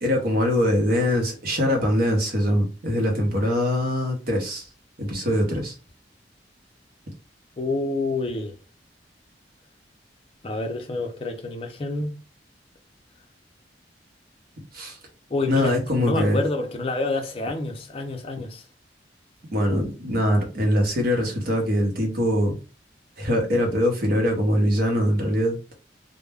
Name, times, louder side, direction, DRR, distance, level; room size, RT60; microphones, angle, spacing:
voice 1, 0.0-4.7 5.0-5.7 14.7-15.0 15.5-16.4 19.5-22.6 23.2-25.6, equal, 55° right, 0.8 m, -23 dB
voice 2, 7.6-8.5 10.4-12.2 15.3-18.6, left 2 dB, 30° left, 0.5 m, -28 dB
2.1 x 2.1 x 3.4 m
head